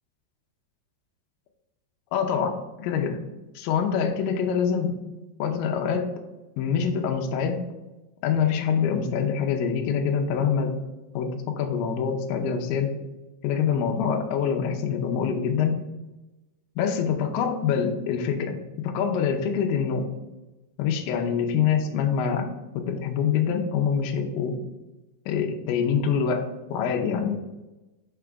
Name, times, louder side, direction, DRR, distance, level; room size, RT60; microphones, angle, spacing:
voice 1, 2.1-3.2 3.6-4.9 5.4-6.1 6.6-7.6 8.2-10.7 11.1-12.9 13.4-15.8 16.8-18.5 18.8-20.1 20.8-22.5 22.7-24.6 25.3-27.3, left 7 dB, 80° left, 3 dB, 2.0 m, -25 dB
5.7 x 4.9 x 3.4 m, 1.1 s
omnidirectional pair, 4.7 m